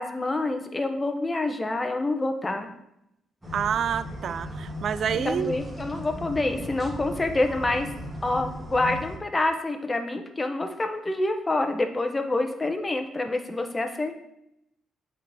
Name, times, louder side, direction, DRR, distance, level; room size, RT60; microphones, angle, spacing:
voice 1, 0.0-2.7 5.1-7.9 8.2-14.1, left 2 dB, 20° left, 6 dB, 0.8 m, -27 dB
sound 1, 3.4-9.2, equal, 15° right, 1.8 m, -37 dB
voice 2, 3.5-5.5, right 8 dB, 60° right, 15 dB, 0.3 m, -28 dB
8.2 x 4.1 x 3.5 m, 0.82 s
cardioid pair, 90°, 0 cm